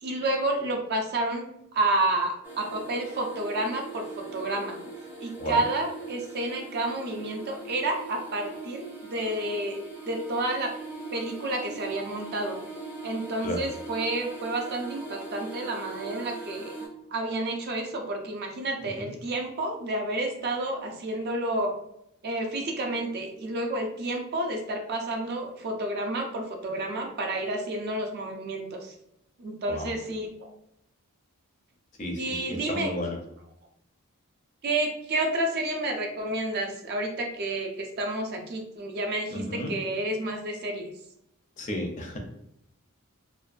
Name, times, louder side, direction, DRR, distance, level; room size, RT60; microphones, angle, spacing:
voice 1, 0.0-1.5 1.7-4.8 5.2-9.8 10.1-10.7 11.1-12.6 13.0-16.7 17.1-21.7 22.2-28.9 29.4-30.5 32.2-32.9 34.6-40.9, right 2 dB, 45° right, 3 dB, 0.4 m, -30 dB
sound 1, 2.4-16.9, right 3 dB, 10° right, 0.6 m, -41 dB
voice 2, 32.5-33.2 39.3-39.7 41.6-42.2, equal, 35° left, 3 dB, 0.4 m, -32 dB
2.5 x 2.2 x 2.4 m, 0.79 s
head